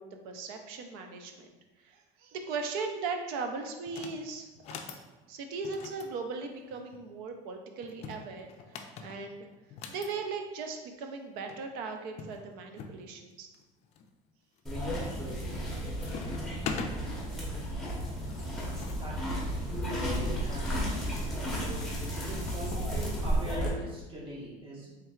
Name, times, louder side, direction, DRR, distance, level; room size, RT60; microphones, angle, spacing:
voice 1, 0.0-5.0 5.3-8.5 9.0-9.5 9.9-13.5, right 4 dB, 70° right, 4 dB, 0.6 m, -38 dB
sound 1, 3.9-4.2 4.6-5.0 5.6-7.0 7.8-10.1 11.2-11.3 11.5-11.6 12.2-13.0 13.5-14.0 14.6-15.0 15.3-15.7 16.0-16.9 17.9-20.9 21.8-22.9, left 5 dB, 45° left, 0.4 m, -43 dB
sound 2, 14.7-23.7, equal, 5° left, 0.9 m, -33 dB
voice 2, 19.9-21.1 22.2-25.0, right 1 dB, 35° right, -5 dB, 1.4 m, -42 dB
4.4 x 3.3 x 2.4 m, 1.2 s
cardioid pair, 145°, 16 cm